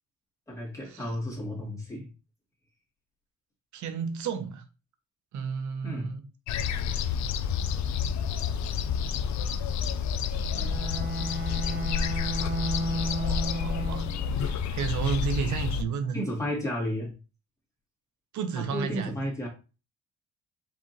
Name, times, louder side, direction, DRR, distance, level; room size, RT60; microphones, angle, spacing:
voice 1, 0.5-2.1 5.8-6.2 16.1-17.1 18.6-19.5, equal, 10° left, 2.4 m, -32 dB
voice 2, 3.7-4.6 5.3-6.2 10.6-10.7 13.2-14.1 14.4-16.2 18.3-19.1, right 6 dB, 70° right, 0.8 m, -32 dB
sound 1, 6.5-15.8, left 6 dB, 65° left, 0.5 m, -29 dB
Bowed string instrument, 10.5-14.4, equal, 40° right, 1.2 m, -33 dB
4.9 x 3.6 x 2.9 m
cardioid pair, 90°, 30 cm